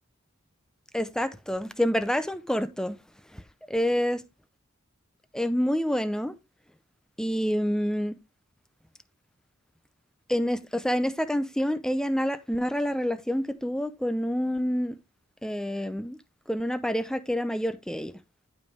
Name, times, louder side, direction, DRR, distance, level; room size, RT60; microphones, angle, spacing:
voice 1, 0.9-3.0 3.3-3.4 3.7-4.2 5.3-6.3 7.2-8.1 10.3-15.0 15.4-16.2 16.5-18.1, equal, 5° left, 0.6 m, -27 dB
11.0 x 5.2 x 3.5 m
head